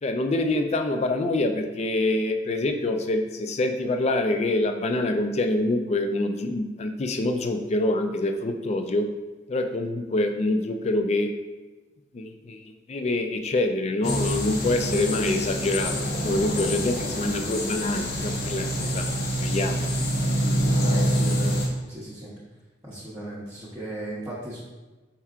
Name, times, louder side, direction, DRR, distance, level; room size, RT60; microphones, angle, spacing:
voice 1, 0.0-9.1 9.5-11.3 12.1-19.9, left 2 dB, 35° left, 6 dB, 0.3 m, -26 dB
sound 1, 14.0-21.7, equal, 55° left, 0.7 m, -26 dB
voice 2, 20.9-22.3 22.8-24.6, right 1 dB, 15° right, -10 dB, 0.8 m, -37 dB
4.7 x 4.3 x 2.4 m, 1.2 s
head